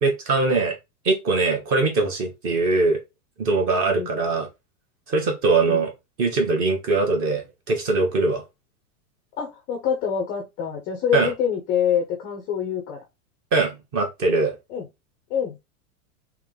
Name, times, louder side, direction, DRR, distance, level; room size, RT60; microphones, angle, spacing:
voice 1, 0.0-0.8 1.0-3.0 3.4-4.5 5.1-5.9 6.2-8.4 11.1-11.3 13.5-14.6, right 3 dB, 30° right, 1.3 m, -22 dB
voice 2, 9.4-13.0 14.7-14.8 15.3-15.6, left 8 dB, 20° left, 0.5 m, -25 dB
3.6 x 3.0 x 3.7 m
supercardioid pair, 155°, 44 cm